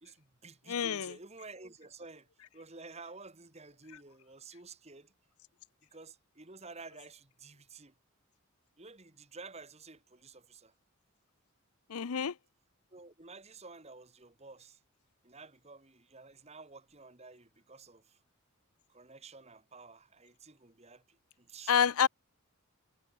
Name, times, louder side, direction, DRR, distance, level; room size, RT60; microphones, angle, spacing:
voice 1, 0.0-2.3 2.5-5.1 5.9-7.9 8.8-10.7 12.9-14.8 15.2-18.2 18.9-21.0 21.4-21.8, right 3 dB, 30° right, 1.9 m, -51 dB
voice 2, 0.7-1.1 11.9-12.3 21.7-22.1, left 7 dB, 80° left, 0.6 m, -28 dB
head